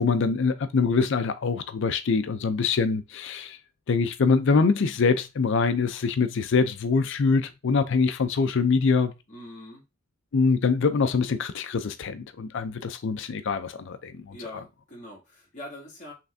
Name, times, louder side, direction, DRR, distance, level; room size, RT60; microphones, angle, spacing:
voice 1, 0.0-3.6 3.9-9.1 10.3-14.3, left 4 dB, 65° left, 0.5 m, -24 dB
voice 2, 9.3-9.8 14.3-16.1, left 1 dB, 40° left, 2.4 m, -43 dB
5.8 x 3.3 x 2.6 m
head